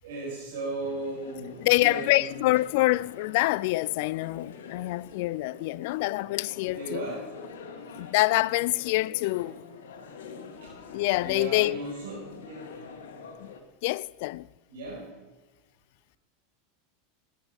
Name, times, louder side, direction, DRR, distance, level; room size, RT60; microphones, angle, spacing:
voice 1, 0.0-2.5 5.9-6.0 6.7-7.3 10.6-10.7 11.1-12.9 14.7-15.1, right 2 dB, 90° right, 5.3 m, -37 dB
sound 1, 0.8-13.6, left 5 dB, 85° left, 1.9 m, -46 dB
voice 2, 1.6-7.0 8.0-9.6 10.9-11.8 13.4-13.5 13.8-14.5, left 19 dB, 65° left, 0.4 m, -26 dB
18.5 x 10.5 x 5.3 m
supercardioid pair, 115°, 0 cm